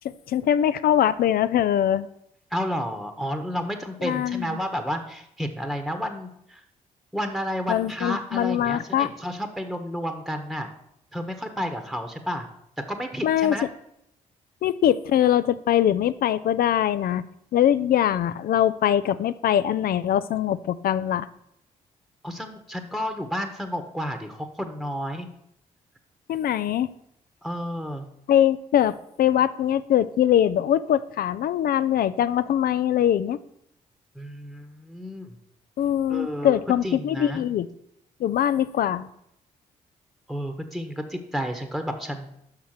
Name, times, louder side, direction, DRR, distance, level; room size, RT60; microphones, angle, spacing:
voice 1, 0.0-2.1 4.0-4.6 7.7-9.1 13.2-13.7 14.6-17.3 17.5-21.3 26.3-26.9 28.3-33.4 35.8-37.7 38.2-39.1, left 10 dB, 60° left, 15 dB, 0.5 m, -22 dB
voice 2, 2.5-6.6 7.1-10.7 11.1-12.5 12.9-13.7 22.2-25.3 27.4-28.0 34.1-35.4 36.1-36.6 36.8-37.4 40.3-42.3, equal, ahead, 6 dB, 1.1 m, -31 dB
5.8 x 5.6 x 6.6 m, 0.76 s
hypercardioid pair, 50°, 17 cm